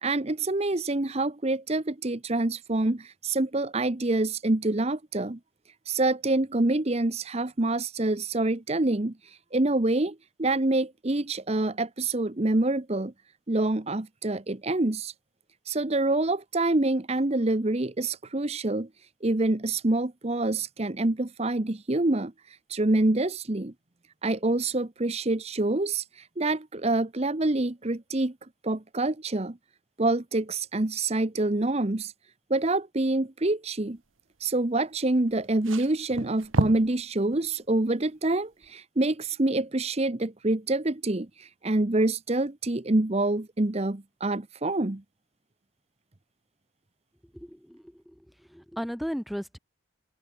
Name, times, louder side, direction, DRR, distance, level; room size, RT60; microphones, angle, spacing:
voice 1, 0.0-5.4 5.8-13.1 13.5-15.1 15.6-18.9 19.2-23.7 24.2-28.3 28.6-29.6 30.0-32.1 32.5-34.0 34.4-45.0, right 2 dB, 30° right, 0.9 m, -26 dB
sound 1, 35.3-37.0 37.3-37.5 38.6-38.7, right 2 dB, 90° right, 1.4 m, -30 dB
voice 2, 47.3-48.1 48.5-49.6, equal, ahead, 2.6 m, -35 dB
open air
head